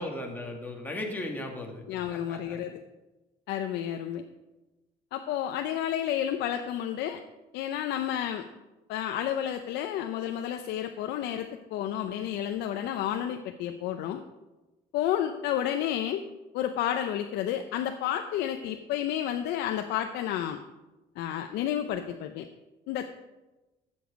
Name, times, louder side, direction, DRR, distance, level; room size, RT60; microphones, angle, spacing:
voice 1, 0.0-1.8 2.1-2.6, left 1 dB, 10° left, 0 dB, 2.1 m, -36 dB
voice 2, 1.9-2.8 3.5-4.2 5.1-7.2 7.5-8.5 8.9-14.2 14.9-16.2 16.5-20.6 21.2-22.5 22.9-23.1, left 10 dB, 85° left, 6 dB, 0.6 m, -31 dB
12.5 x 7.1 x 5.1 m, 1.1 s
cardioid pair, 110°, 17 cm